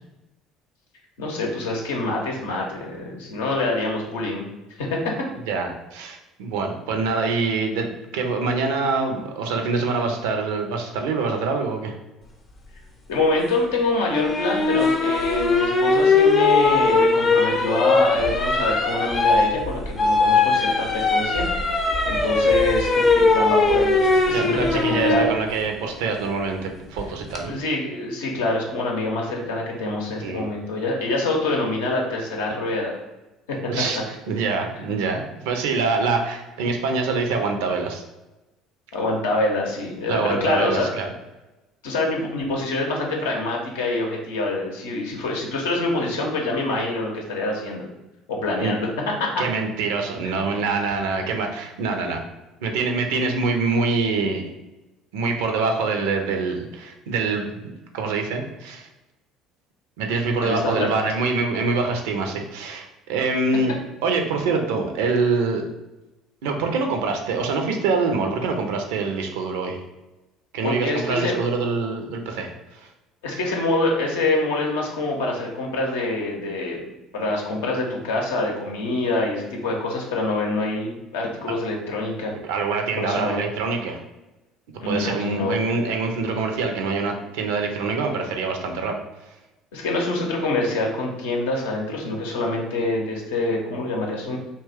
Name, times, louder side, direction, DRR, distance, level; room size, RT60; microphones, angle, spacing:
voice 1, 1.2-4.4 4.8-5.1 13.1-21.5 21.7-25.4 27.4-33.0 33.5-34.0 34.7-34.8 38.9-40.9 41.8-47.9 48.3-48.9 49.2-49.4 50.2-50.4 60.4-60.9 70.6-71.4 73.2-82.3 83.0-83.4 84.8-85.6 89.7-94.4, left 2 dB, 75° left, -1 dB, 0.6 m, -25 dB
voice 2, 5.5-11.9 24.3-27.6 30.2-30.5 33.7-34.0 34.3-38.0 40.1-41.1 48.6-48.7 49.4-52.2 52.6-54.5 55.1-58.9 60.0-63.7 64.0-65.6 66.4-69.8 70.5-72.9 82.4-84.0 84.8-89.0, right 4 dB, 70° right, 4 dB, 0.4 m, -25 dB
sound 1, 14.1-25.3 27.0-27.4, left 3 dB, 35° left, 0.6 m, -20 dB
2.8 x 2.2 x 3.3 m, 1.0 s
hypercardioid pair, 60°, 0 cm